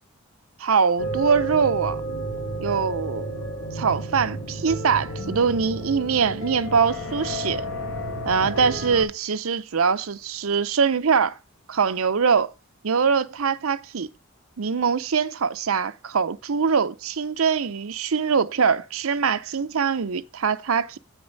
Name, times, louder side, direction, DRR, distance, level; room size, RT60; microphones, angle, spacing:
voice 1, 0.6-2.0 2.6-3.4 3.7-7.7 8.3-11.4 11.7-12.5 12.8-14.1 14.6-21.0, right 6 dB, 75° right, 0.6 m, -23 dB
sound 1, 1.0-9.0, right 1 dB, 70° left, 2.7 m, -31 dB
8.9 x 6.8 x 4.0 m
head